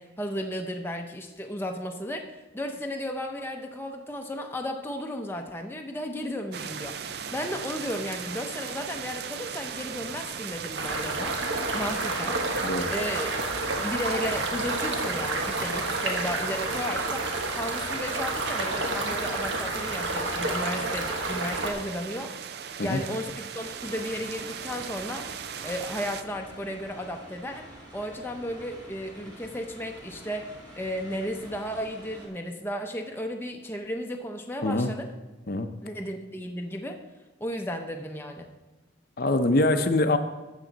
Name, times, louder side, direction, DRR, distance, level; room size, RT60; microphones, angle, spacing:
voice 1, 0.0-7.0 7.3-11.4 11.7-12.4 12.9-13.4 13.8-17.2 17.5-22.3 22.8-25.3 25.6-27.6 27.9-35.1 35.8-37.0 37.4-38.6, equal, 10° left, 3 dB, 0.6 m, -34 dB
sound 1, 6.5-26.2, right 7 dB, 55° right, 0.4 m, -38 dB
sound 2, 10.7-21.7, right 2 dB, 80° right, 1.3 m, -30 dB
voice 2, 12.6-12.9 22.8-23.0 34.6-34.9 35.5-35.7 39.2-40.2, left 2 dB, 50° left, 7 dB, 0.6 m, -24 dB
sound 3, 23.6-32.3, right 1 dB, 20° right, 2.2 m, -48 dB
12.0 x 7.4 x 4.0 m, 1.2 s
head